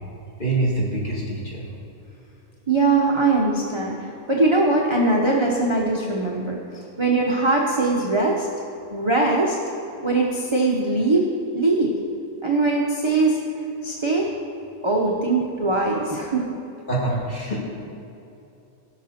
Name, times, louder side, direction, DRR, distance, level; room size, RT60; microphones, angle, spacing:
voice 1, 0.4-1.7 16.9-17.6, right 2 dB, 35° left, -6 dB, 2.6 m, -25 dB
voice 2, 2.7-6.6 7.0-8.5 8.9-9.6 10.0-11.2 11.5-11.9 12.4-13.4 13.8-14.3 14.8-16.4, right 3 dB, 25° right, -2 dB, 0.8 m, -21 dB
16.5 x 6.0 x 4.3 m, 2.8 s
omnidirectional pair, 1.5 m